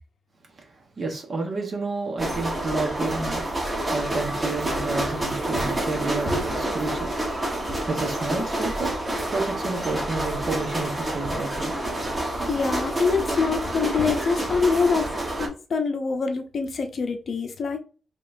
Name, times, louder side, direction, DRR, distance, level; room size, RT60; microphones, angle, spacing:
voice 1, 1.0-7.1 7.9-12.0, right 3 dB, 40° right, 1.2 m, -30 dB
sound 1, 2.2-15.5, right 1 dB, 20° right, 1.3 m, -28 dB
voice 2, 12.5-15.1 15.4-17.8, left 5 dB, 50° left, 0.7 m, -25 dB
5.3 x 3.1 x 2.6 m
wide cardioid pair, 170°, 0 cm